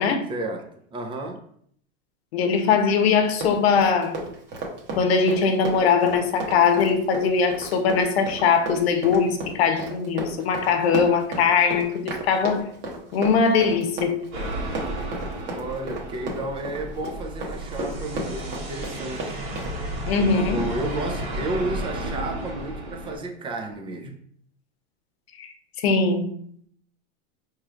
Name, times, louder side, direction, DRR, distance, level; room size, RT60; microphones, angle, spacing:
voice 1, 0.3-1.4 15.4-19.4 20.2-24.2, right 2 dB, 15° right, 4 dB, 0.5 m, -32 dB
voice 2, 2.3-4.2 5.0-12.7 13.1-14.2 20.1-20.7 25.4-26.3, left 5 dB, 85° left, 7 dB, 0.8 m, -21 dB
Run, 3.2-19.7, right 2 dB, 35° right, 1.1 m, -33 dB
sound 1, 14.3-23.2, right 1 dB, 70° right, 1.5 m, -33 dB
4.5 x 3.1 x 2.4 m, 0.65 s
supercardioid pair, 130°, 31 cm